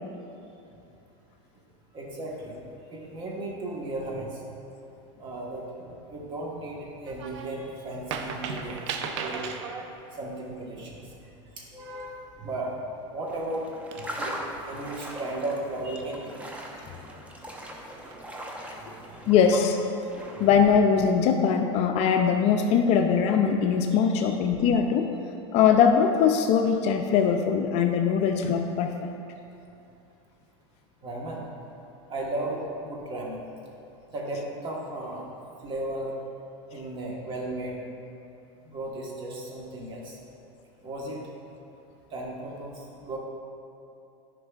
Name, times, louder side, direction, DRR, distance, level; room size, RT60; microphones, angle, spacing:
voice 1, 1.9-2.6 2.9-4.4 5.2-9.5 10.1-11.1 11.6-12.8 13.1-13.7 13.9-16.9 17.2-17.3 17.6-17.7 18.7-19.6 20.3-20.4 24.1-24.4 31.0-31.5 32.1-33.4 34.1-35.3 35.6-36.1 36.7-37.8 38.6-40.2 40.8-41.2 42.1-43.2, right 2 dB, 30° right, -2 dB, 1.3 m, -35 dB
sound 1, 7.1-7.5 7.9-9.9 12.6-12.8 13.4-13.5 13.9-14.5 16.0-16.6 17.8-18.4 18.9-19.1, right 5 dB, 70° right, 0.6 m, -37 dB
sound 2, 13.3-20.8, equal, 10° right, 0.7 m, -40 dB
voice 2, 19.3-19.8 20.4-25.1 25.5-28.9, left 7 dB, 45° left, 5 dB, 0.4 m, -21 dB
9.9 x 5.2 x 2.4 m, 2.8 s
supercardioid pair, 125°, 16 cm